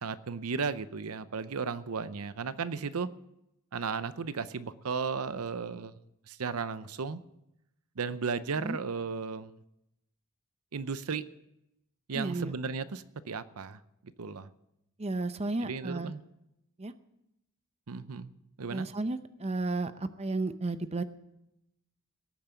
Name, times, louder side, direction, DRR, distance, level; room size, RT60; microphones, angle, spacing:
voice 1, 0.0-3.1 3.7-5.9 6.3-7.2 8.0-9.5 10.7-11.2 12.1-13.8 14.2-14.5 15.6-16.2 17.9-18.3 18.6-18.9, right 5 dB, 80° right, 14 dB, 0.7 m, -35 dB
voice 2, 12.1-12.5 15.0-16.1 16.8-16.9 18.7-21.0, right 2 dB, 30° right, 11 dB, 0.6 m, -33 dB
18.0 x 8.8 x 7.0 m, 0.85 s
head